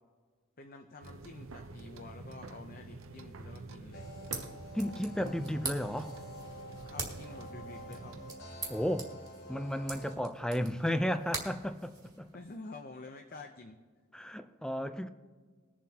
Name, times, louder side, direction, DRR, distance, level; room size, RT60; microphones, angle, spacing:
voice 1, 0.6-4.1 6.9-8.1 12.3-13.8, left 3 dB, 45° left, 0.7 m, -49 dB
sound 1, 1.0-8.3, right 3 dB, 80° right, 0.7 m, -48 dB
sound 2, 3.9-10.1, equal, 85° left, 1.8 m, -49 dB
sound 3, 4.0-12.5, right 3 dB, 20° right, 2.0 m, -44 dB
voice 2, 4.7-6.1 8.7-9.1 9.5-12.3 14.1-15.1, equal, 5° left, 0.5 m, -33 dB
21.5 x 7.4 x 2.9 m
head